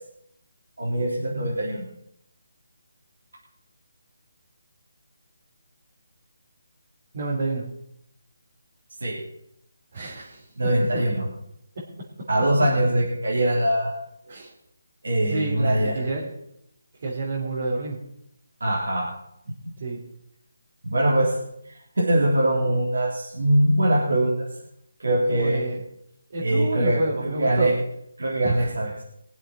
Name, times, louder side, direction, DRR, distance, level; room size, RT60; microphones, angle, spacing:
voice 1, 0.8-1.9 9.0-9.2 10.6-11.2 12.3-13.9 15.0-15.9 18.6-19.1 20.8-21.3 22.0-24.3 25.0-25.6 26.4-27.7 28.2-28.9, right 1 dB, 85° right, -5 dB, 3.9 m, -22 dB
voice 2, 7.1-7.6 9.9-10.5 10.9-11.0 14.3-14.5 15.2-16.4 17.0-18.0 19.8-20.0 25.3-25.8 26.3-27.7 28.4-28.7, right 2 dB, 50° right, -6 dB, 3.7 m, -29 dB
22.5 x 7.6 x 4.6 m, 0.76 s
figure-of-eight pair, 160°, 0 cm